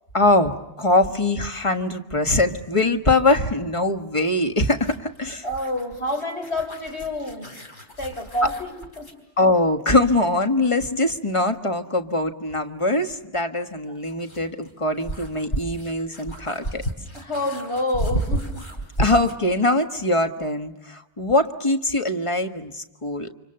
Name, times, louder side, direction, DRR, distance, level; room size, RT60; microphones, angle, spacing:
voice 1, 0.1-5.5 8.4-8.5 9.4-16.8 19.0-23.3, left 2 dB, 25° left, 1.5 m, -22 dB
sound 1, 4.7-9.2 11.6-11.7 13.7-19.5, right 2 dB, 45° left, 4.4 m, -32 dB
voice 2, 5.4-7.5 8.0-8.7 9.0-9.1 17.1-18.5, left 1 dB, 65° left, 4.2 m, -28 dB
30.0 x 26.5 x 6.7 m
omnidirectional pair, 1.2 m